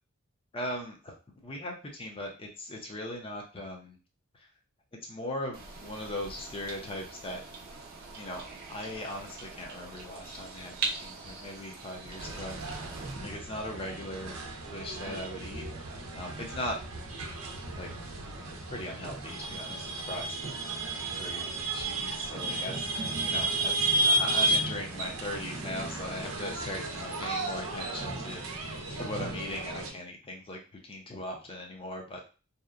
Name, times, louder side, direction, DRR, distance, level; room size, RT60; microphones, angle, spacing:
voice 1, 0.5-1.1 1.4-4.0 4.3-4.5 5.1-7.4 8.1-12.6 13.2-14.4 14.7-15.6 16.1-16.8 17.8-17.9 18.4-20.8 21.0-22.9 23.2-28.5 29.0-32.2, left 1 dB, 25° left, 2 dB, 0.6 m, -39 dB
sound 1, 5.5-13.1, right 4 dB, 45° right, 0.6 m, -41 dB
sound 2, 12.2-29.9, right 2 dB, 90° right, 0.6 m, -33 dB
2.7 x 2.1 x 2.4 m, 0.34 s
head